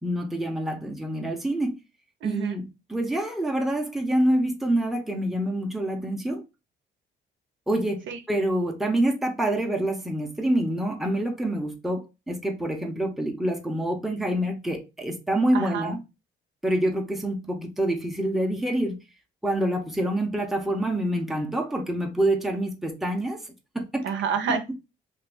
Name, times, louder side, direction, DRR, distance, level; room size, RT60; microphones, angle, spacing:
voice 1, 0.0-1.7 2.2-6.4 7.7-16.0 16.6-19.0 19.4-23.4 23.7-24.1, right 1 dB, ahead, 0.7 m, -26 dB
voice 2, 2.2-2.6 8.1-8.2 15.5-15.9 24.0-24.7, right 6 dB, 70° right, 0.7 m, -28 dB
2.7 x 2.6 x 3.4 m
cardioid pair, 90°, 20 cm